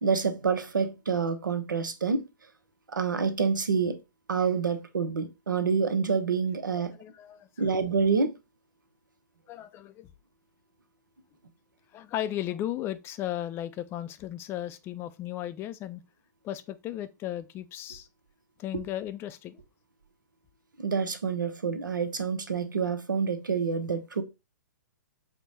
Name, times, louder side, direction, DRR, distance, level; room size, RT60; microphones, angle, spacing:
voice 1, 0.0-2.2 2.9-4.0 4.3-6.9 7.6-8.3 20.8-24.2, right 5 dB, 85° right, 0.8 m, -27 dB
voice 2, 7.0-7.5 9.5-10.1 11.9-16.0 16.4-18.1 18.6-19.6, left 12 dB, 25° left, 0.4 m, -35 dB
4.6 x 2.2 x 4.0 m
hypercardioid pair, 125°, 10 cm